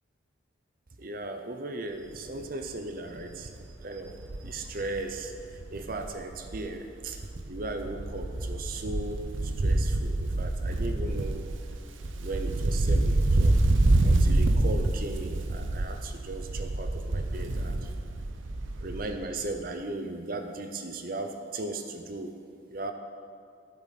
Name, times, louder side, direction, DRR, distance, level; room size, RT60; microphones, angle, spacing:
voice 1, 1.0-3.5 3.8-4.1 4.4-11.4 12.1-13.6 14.0-17.9 18.8-22.3 22.7-22.9, right 2 dB, 45° right, 6 dB, 0.7 m, -37 dB
Wind, 2.1-2.4 2.8-2.9 3.2-6.7 7.0-19.2 19.5-19.6, right 2 dB, 85° right, 0.7 m, -27 dB
11.0 x 8.8 x 4.2 m, 2.4 s
head